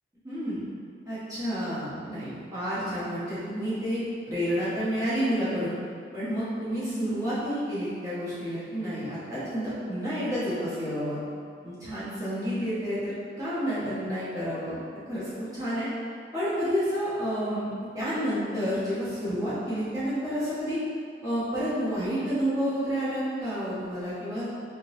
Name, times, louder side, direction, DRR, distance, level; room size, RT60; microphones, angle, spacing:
voice 1, 0.2-0.6 1.1-5.7 6.1-11.2 11.6-15.9 16.3-17.7 17.9-20.8 21.2-24.5, equal, 20° right, -11 dB, 1.0 m, -30 dB
3.8 x 2.7 x 2.5 m, 2.2 s
head